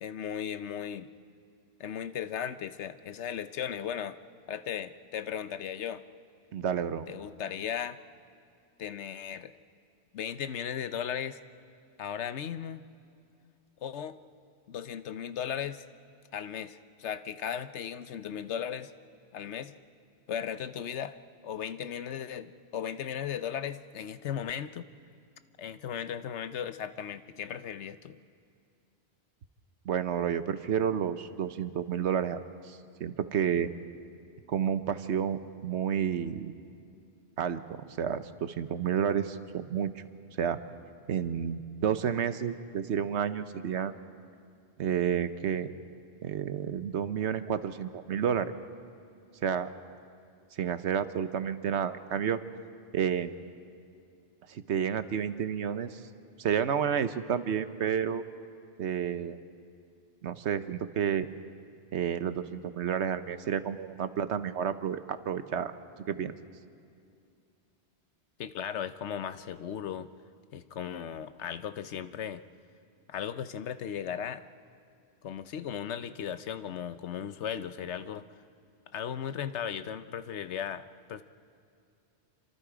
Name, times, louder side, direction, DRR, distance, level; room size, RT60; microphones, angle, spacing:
voice 1, 0.0-1.1 1.8-4.2 4.5-6.0 7.1-8.0 8.8-9.5 10.1-11.4 12.0-12.8 13.8-14.2 14.7-15.8 16.3-18.9 19.3-19.7 20.3-21.2 21.4-24.9 25.6-28.2 68.4-70.1 70.5-72.4 73.1-74.5 75.2-78.3 78.9-81.2, left 8 dB, 90° left, 12 dB, 1.1 m, -36 dB
voice 2, 6.5-7.1 29.8-33.7 34.5-36.5 37.4-39.9 40.4-40.6 41.1-44.0 44.8-45.7 46.2-48.5 49.4-49.7 50.5-52.4 52.9-53.3 54.5-56.0 56.4-58.2 58.8-59.4 60.2-61.3 61.9-65.7 66.1-66.3, right 8 dB, 80° right, 11 dB, 1.2 m, -30 dB
27.5 x 25.5 x 5.0 m, 2.5 s
omnidirectional pair, 1.1 m